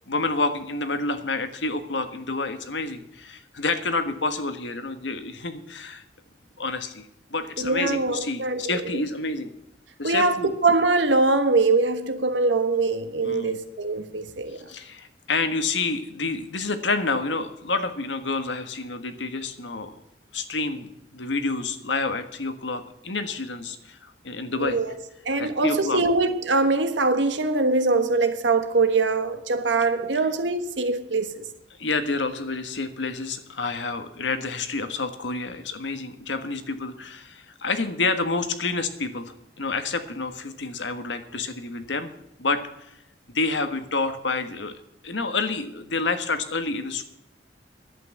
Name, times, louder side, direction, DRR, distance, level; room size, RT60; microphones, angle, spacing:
voice 1, 0.1-6.0 6.6-9.5 10.0-10.5 13.2-13.6 14.5-20.0 20.3-24.8 25.4-26.0 31.8-42.1 42.4-43.0 43.3-44.7 45.0-47.0, left 3 dB, 85° left, 1.5 m, -29 dB
voice 2, 7.6-8.7 10.0-14.7 24.6-24.9 25.2-31.4, right 3 dB, 90° right, 1.4 m, -23 dB
11.0 x 8.7 x 8.0 m
head